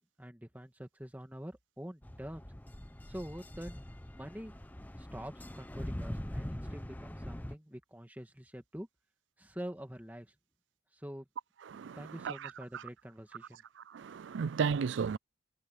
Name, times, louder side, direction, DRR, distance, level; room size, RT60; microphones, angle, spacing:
voice 1, 0.2-2.5 3.1-3.8 4.1-4.6 5.0-8.9 9.4-10.3 10.9-11.3 12.0-13.6, equal, 10° right, 1.9 m, -45 dB
sound 1, 2.0-7.5, equal, 10° left, 0.7 m, -43 dB
voice 2, 11.7-12.8 13.9-15.2, right 6 dB, 75° right, 0.4 m, -34 dB
head